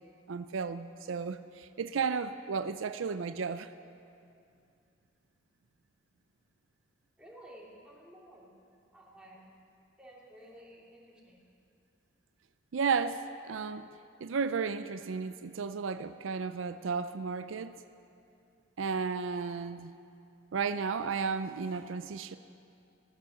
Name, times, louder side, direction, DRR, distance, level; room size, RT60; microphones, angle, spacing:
voice 1, 0.3-3.7 12.7-13.9 14.2-17.8 18.8-19.9 20.5-22.4, right 5 dB, 80° right, 12 dB, 0.4 m, -33 dB
voice 2, 7.2-8.5 8.9-9.5 10.0-11.4, equal, 5° right, -5 dB, 2.9 m, -53 dB
16.0 x 13.0 x 6.5 m, 2.6 s
head